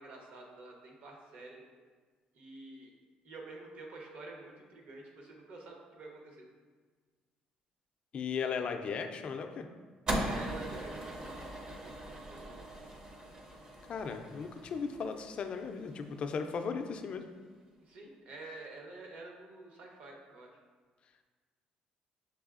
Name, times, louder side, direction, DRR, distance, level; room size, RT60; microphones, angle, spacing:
voice 1, 0.0-1.6 2.3-2.9 3.2-6.4 10.2-11.5 12.1-12.6 17.8-20.5, right 2 dB, 60° right, 0 dB, 0.8 m, -48 dB
voice 2, 8.1-9.7 13.9-17.2, left 5 dB, 40° left, 7 dB, 0.3 m, -36 dB
sound 1, 10.1-16.4, right 1 dB, 25° right, 0.5 m, -40 dB
6.0 x 3.2 x 2.4 m, 1.5 s
cardioid pair, 145°, 3 cm